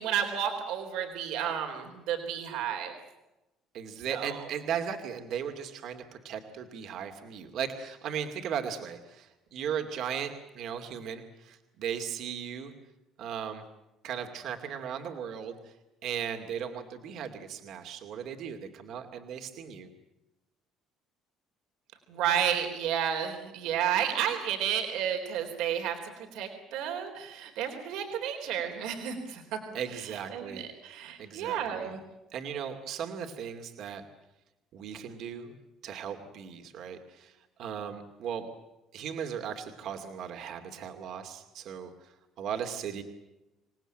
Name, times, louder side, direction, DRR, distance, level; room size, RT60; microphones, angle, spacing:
voice 1, 0.0-2.9 4.1-4.3 22.1-26.0 26.3-29.6 30.3-32.0, right 9 dB, 75° right, 4 dB, 3.8 m, -31 dB
voice 2, 3.7-12.7 13.2-13.6 14.0-15.7 16.0-19.9 29.7-30.6 31.2-32.0 32.3-34.0 34.7-35.6 35.8-38.5 38.9-43.0, right 8 dB, 60° right, 5 dB, 2.4 m, -37 dB
27.0 x 18.5 x 9.0 m, 0.99 s
cardioid pair, 145°, 0 cm